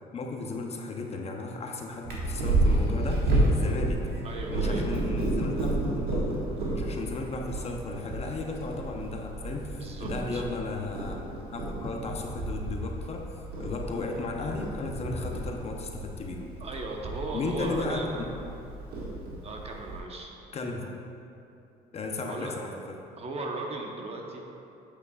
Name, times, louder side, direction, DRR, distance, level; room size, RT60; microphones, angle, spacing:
voice 1, 0.1-4.1 4.5-5.8 6.1-6.3 6.7-11.2 11.5-16.5 17.3-18.3 20.5-20.8 21.9-22.9, left 3 dB, 40° left, 2 dB, 0.8 m, -35 dB
Purr, 2.0-20.0, right 2 dB, 70° right, 1.6 m, -31 dB
voice 2, 4.2-4.9 9.7-10.4 16.6-18.3 19.4-20.3 22.3-22.5 23.2-24.4, right 2 dB, 35° right, 0 dB, 0.9 m, -37 dB
8.4 x 8.0 x 2.4 m, 2.7 s
cardioid pair, 110°, 17 cm